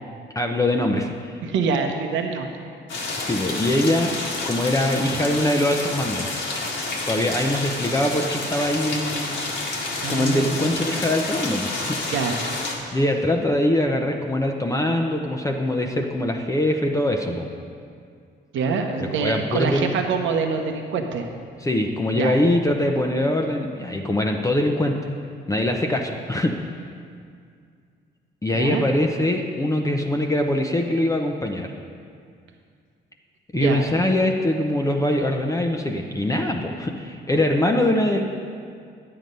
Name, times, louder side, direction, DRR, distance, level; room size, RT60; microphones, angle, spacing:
voice 1, 0.3-1.3 3.2-4.1 4.4-6.3 7.1-9.4 10.1-12.0 12.9-17.5 19.0-19.9 21.6-25.1 25.5-26.7 28.4-31.7 33.5-38.2, left 1 dB, 15° left, 2 dB, 0.7 m, -23 dB
voice 2, 1.4-2.5 10.0-10.8 12.1-12.4 18.5-21.3 22.1-22.4 28.5-28.8 33.5-33.9, right 5 dB, 75° right, 4 dB, 0.8 m, -25 dB
sound 1, 2.9-12.8, left 2 dB, 70° left, 1.7 m, -29 dB
9.9 x 7.7 x 5.3 m, 2.2 s
cardioid pair, 90°, 20 cm